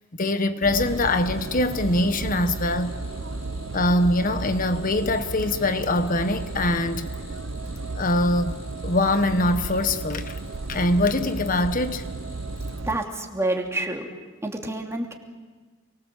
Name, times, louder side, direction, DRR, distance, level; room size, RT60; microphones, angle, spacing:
voice 1, 0.1-3.0 3.7-7.1 7.9-10.4 10.7-12.1 12.8-12.9, left 1 dB, 45° left, 1.4 m, -23 dB
sound 1, 0.6-13.0, right 3 dB, 80° right, 0.9 m, -34 dB
sound 2, 0.7-12.8, left 1 dB, 75° left, 6.3 m, -46 dB
voice 2, 12.8-14.1 14.4-15.1, right 2 dB, 15° right, 2.9 m, -28 dB
28.5 x 24.0 x 7.7 m
head